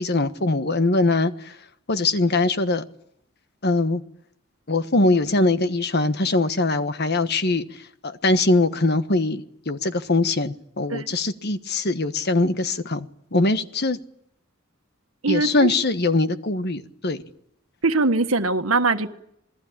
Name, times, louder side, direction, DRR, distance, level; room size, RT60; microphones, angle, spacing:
voice 1, 0.0-1.5 1.9-2.8 3.6-4.0 4.7-7.6 8.0-14.0 15.3-17.2, left 2 dB, 55° left, 1.4 m, -22 dB
voice 2, 15.2-15.7 17.8-19.1, right 3 dB, 90° right, 1.6 m, -21 dB
27.5 x 20.0 x 8.8 m
head